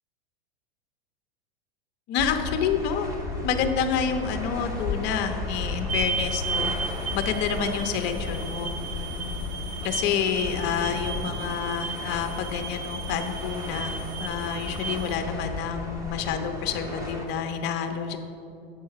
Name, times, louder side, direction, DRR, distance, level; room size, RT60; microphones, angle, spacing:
voice 1, 2.1-3.1 3.4-6.7 7.1-9.6 9.8-18.2, left 7 dB, 35° left, 6 dB, 0.6 m, -28 dB
sound 1, 2.2-17.3, left 3 dB, 10° right, 0.8 m, -34 dB
sound 2, 5.9-15.2, right 5 dB, 55° right, 0.6 m, -35 dB
7.2 x 4.7 x 4.6 m, 2.7 s
hypercardioid pair, 120°, 31 cm